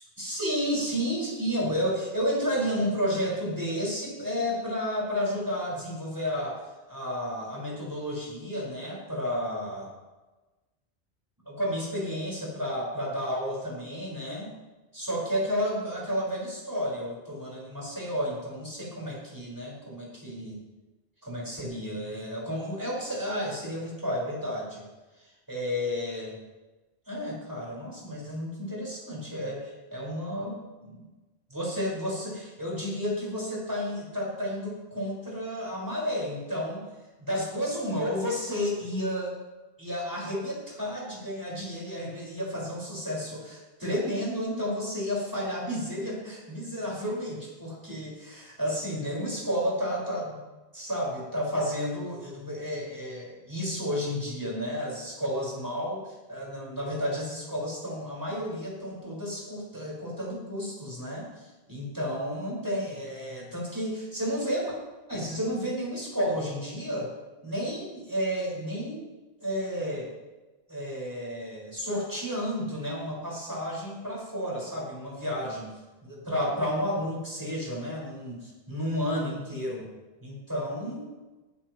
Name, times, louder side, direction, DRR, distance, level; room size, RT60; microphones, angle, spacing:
voice 1, 0.2-9.9 11.5-14.5 14.9-20.6 21.2-24.8 25.5-26.4 27.1-31.1 31.5-36.8 37.2-39.3 39.8-50.4 50.7-64.8 65.1-67.1 67.4-69.0 69.4-70.1 70.7-75.7 76.0-79.9 80.2-81.0, equal, 20° right, -4 dB, 5.5 m, -32 dB
18.5 x 13.0 x 3.2 m, 1.2 s
omnidirectional pair, 1.1 m